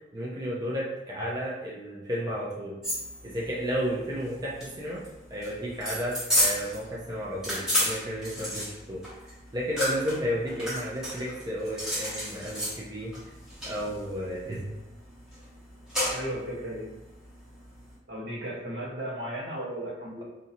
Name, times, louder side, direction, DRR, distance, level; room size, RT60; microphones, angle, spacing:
voice 1, 0.1-2.8 3.2-5.0 5.3-9.0 9.5-13.1 13.7-14.6, equal, 20° right, -6 dB, 0.6 m, -32 dB
sound 1, 2.8-17.9, equal, 5° right, 1.0 m, -33 dB
voice 2, 16.1-16.9 18.1-20.2, right 1 dB, 70° right, -3 dB, 1.1 m, -35 dB
2.7 x 2.6 x 4.2 m, 1.0 s
head